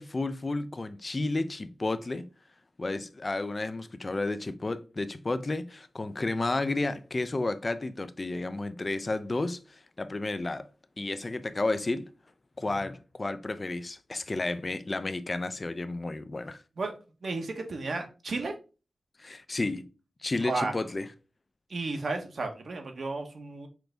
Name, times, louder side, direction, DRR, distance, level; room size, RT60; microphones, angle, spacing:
voice 1, 0.0-2.3 2.8-10.7 11.0-12.1 12.6-16.6 19.2-19.9 20.2-21.1, left 2 dB, 30° left, 0.4 m, -32 dB
voice 2, 17.2-18.5 20.4-20.7 21.7-23.7, right 3 dB, 55° right, 0.9 m, -33 dB
6.0 x 2.6 x 3.3 m
wide cardioid pair, 140°, 0 cm